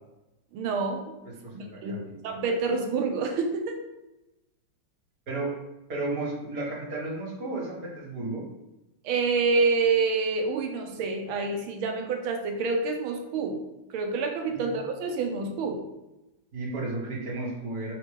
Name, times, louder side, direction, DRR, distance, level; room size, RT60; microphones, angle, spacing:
voice 1, 0.5-1.1 1.5-3.8 9.0-13.6 13.9-15.8, right 4 dB, 85° right, 4 dB, 1.7 m, -27 dB
voice 2, 1.2-2.0 5.3-5.5 5.9-8.4 14.5-14.8 16.5-17.9, right 2 dB, 45° right, -2 dB, 1.9 m, -33 dB
4.7 x 4.2 x 5.2 m, 0.96 s
omnidirectional pair, 2.2 m